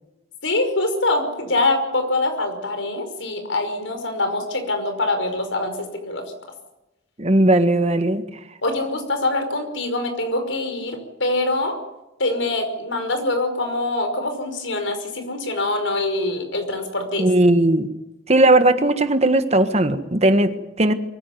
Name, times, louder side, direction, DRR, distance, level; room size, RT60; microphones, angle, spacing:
voice 1, 0.4-6.2 8.6-11.8 12.2-17.3, left 2 dB, 85° left, 6 dB, 5.4 m, -24 dB
voice 2, 7.2-8.2 17.2-17.9 18.3-20.9, right 1 dB, 35° right, 9 dB, 1.5 m, -17 dB
23.5 x 16.0 x 9.5 m, 0.97 s
head